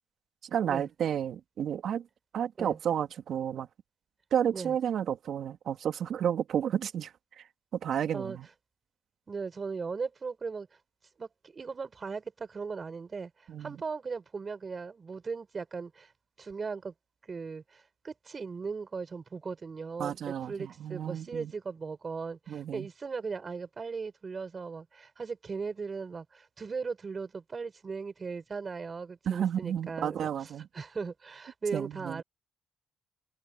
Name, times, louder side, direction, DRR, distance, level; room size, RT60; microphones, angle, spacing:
voice 1, 0.5-2.1 2.3-3.7 4.3-7.1 7.4-7.5 7.8-8.5 13.5-13.8 20.0-21.5 22.5-22.9 29.2-30.7 31.7-32.2, right 9 dB, 65° right, 3.1 m, -31 dB
voice 2, 9.3-10.7 11.2-16.1 16.4-16.9 17.3-30.3 30.7-32.2, right 5 dB, 35° right, 5.8 m, -38 dB
cardioid pair, 90°, 0 cm